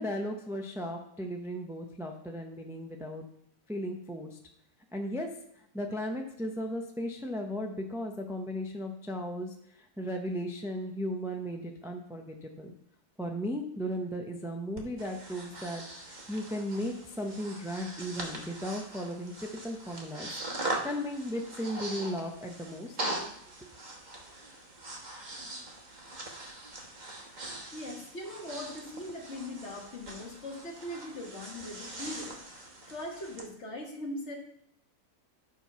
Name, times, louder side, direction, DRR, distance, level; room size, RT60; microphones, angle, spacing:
voice 1, 0.0-3.2 3.7-4.4 4.9-5.3 5.7-12.7 13.2-20.3 20.8-23.0, equal, 5° right, 2 dB, 0.4 m, -36 dB
Breathing, 14.8-33.5, right 2 dB, 30° right, 1.3 m, -41 dB
voice 2, 27.7-34.4, left 1 dB, 45° left, 0 dB, 1.9 m, -41 dB
10.0 x 4.6 x 5.6 m, 0.75 s
omnidirectional pair, 1.7 m